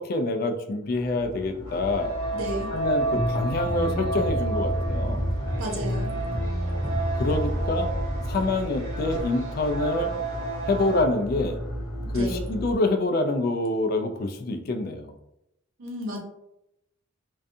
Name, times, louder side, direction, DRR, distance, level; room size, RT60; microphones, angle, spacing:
voice 1, 0.0-2.1 2.7-5.2 7.2-7.9 8.3-10.1 10.7-11.6 12.1-15.1, left 2 dB, 45° left, 6 dB, 0.3 m, -26 dB
sound 1, 0.8-12.7, equal, 85° left, 0.6 m, -35 dB
sound 2, 1.6-11.0, right 2 dB, 40° right, 0.8 m, -32 dB
voice 2, 2.3-2.7 5.6-6.1 12.0-12.5 15.8-16.2, equal, 75° right, 0 dB, 0.7 m, -32 dB
sound 3, 3.1-8.5, equal, 5° right, 0.5 m, -29 dB
2.5 x 2.3 x 2.5 m, 0.82 s
head